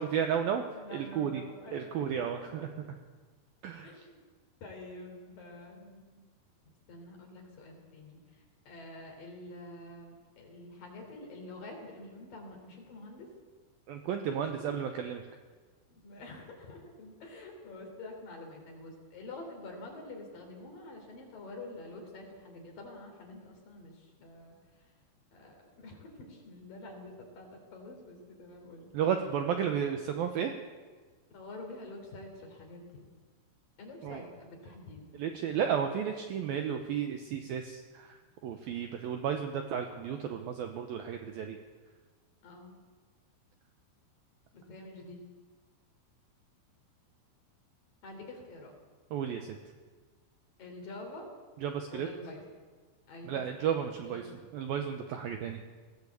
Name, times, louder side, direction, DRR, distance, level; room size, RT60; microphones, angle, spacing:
voice 1, 0.0-0.6 0.9-1.4 1.7-2.6 3.6-3.9 13.9-15.2 28.9-30.5 34.0-34.2 35.2-38.1 38.4-41.6 49.1-49.6 51.6-52.1 53.3-54.2 54.5-55.6, right 8 dB, 75° right, 5 dB, 2.3 m, -33 dB
voice 2, 0.6-2.7 3.8-4.2 4.6-6.2 6.9-13.3 14.3-14.6 15.9-24.8 25.3-28.9 31.3-33.1 33.8-35.1 35.4-35.8 42.4-42.8 44.5-45.2 48.0-48.7 50.6-51.3 51.9-52.4 53.1-53.5 54.0-54.3, left 2 dB, 50° left, 2 dB, 5.2 m, -47 dB
19.5 x 17.0 x 8.3 m, 1.4 s
omnidirectional pair, 5.4 m